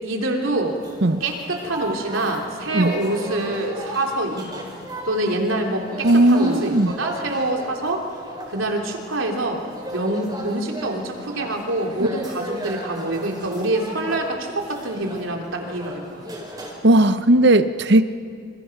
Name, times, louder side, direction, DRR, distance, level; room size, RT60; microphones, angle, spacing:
voice 1, 0.0-0.8 1.2-4.6 5.0-8.0 8.5-9.6 9.9-16.2, right 1 dB, 80° right, 1 dB, 3.3 m, -25 dB
sound 1, 0.6-16.7, right 1 dB, 20° right, 4.3 m, -37 dB
voice 2, 6.0-6.9 16.8-18.0, right 1 dB, 55° right, 11 dB, 0.9 m, -16 dB
27.0 x 24.5 x 6.0 m, 2.3 s
head